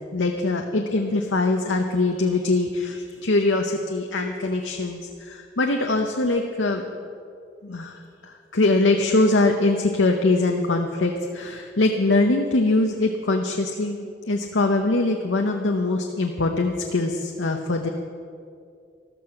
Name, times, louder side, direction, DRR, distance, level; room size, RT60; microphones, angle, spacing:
voice 1, 0.1-6.8 7.6-17.9, left 2 dB, 85° left, 3 dB, 0.9 m, -23 dB
14.0 x 12.5 x 5.9 m, 2.4 s
head